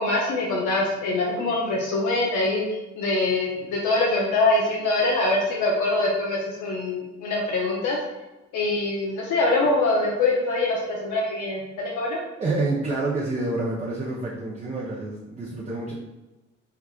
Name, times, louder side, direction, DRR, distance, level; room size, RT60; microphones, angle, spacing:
voice 1, 0.0-2.6 3.0-8.0 8.5-12.2, left 2 dB, 80° left, -3 dB, 0.7 m, -24 dB
voice 2, 12.4-15.9, right 2 dB, 25° right, -5 dB, 0.6 m, -28 dB
4.6 x 2.4 x 2.3 m, 1.1 s
cardioid pair, 90°, 30 cm